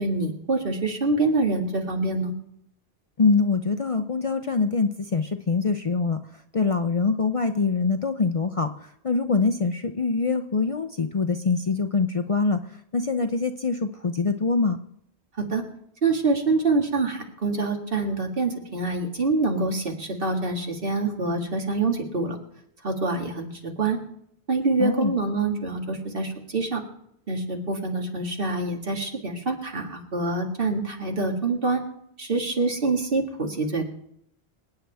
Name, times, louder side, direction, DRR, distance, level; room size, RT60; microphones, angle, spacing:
voice 1, 0.0-2.3 15.5-15.6 16.0-22.4 22.8-24.0 24.5-26.8 27.3-31.8 32.2-33.9, right 3 dB, 60° right, 2 dB, 2.1 m, -26 dB
voice 2, 3.2-6.2 6.5-12.6 12.9-14.8 24.8-25.1, left 4 dB, 40° left, 8 dB, 0.6 m, -24 dB
26.0 x 9.1 x 3.5 m, 0.74 s
omnidirectional pair, 1.1 m